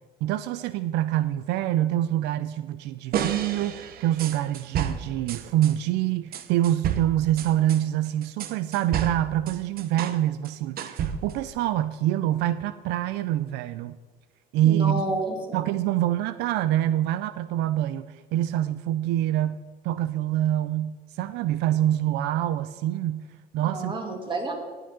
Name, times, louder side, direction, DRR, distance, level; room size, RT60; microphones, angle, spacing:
voice 1, 0.2-14.0 14.5-15.0 15.5-23.3 23.5-23.9, right 12 dB, 85° right, 14 dB, 0.4 m, -26 dB
sound 1, 3.1-5.7 6.3-10.2 10.4-11.5, right 8 dB, 60° right, 0.8 m, -31 dB
voice 2, 14.7-15.6 23.6-24.5, right 2 dB, 30° right, 2 dB, 2.3 m, -30 dB
18.5 x 7.8 x 3.8 m, 1.4 s
cardioid pair, 110°, 17 cm